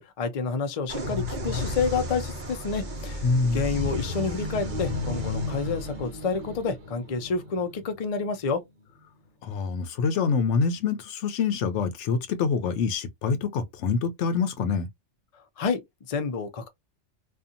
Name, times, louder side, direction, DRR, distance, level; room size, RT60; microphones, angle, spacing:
voice 1, 0.0-8.6 15.6-15.8 16.1-16.7, left 5 dB, 50° left, 0.4 m, -29 dB
sound 1, 0.9-8.5, left 2 dB, 45° right, 0.9 m, -33 dB
voice 2, 3.2-3.8 9.4-14.9, left 5 dB, 75° left, 0.9 m, -26 dB
2.7 x 2.4 x 2.4 m
omnidirectional pair, 1.2 m